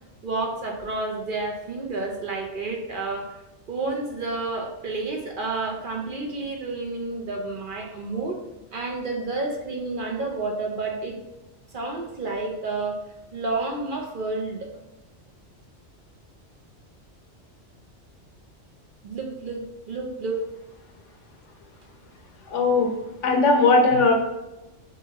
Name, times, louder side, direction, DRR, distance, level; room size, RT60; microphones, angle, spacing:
voice 1, 0.2-3.3 3.7-8.4 8.7-11.2 11.7-13.0 13.3-14.7 19.0-20.4, right 3 dB, 55° right, 1 dB, 0.7 m, -30 dB
voice 2, 22.5-22.9 23.2-24.1, left 3 dB, 85° left, 2 dB, 1.1 m, -18 dB
4.9 x 2.7 x 2.8 m, 0.98 s
omnidirectional pair, 1.2 m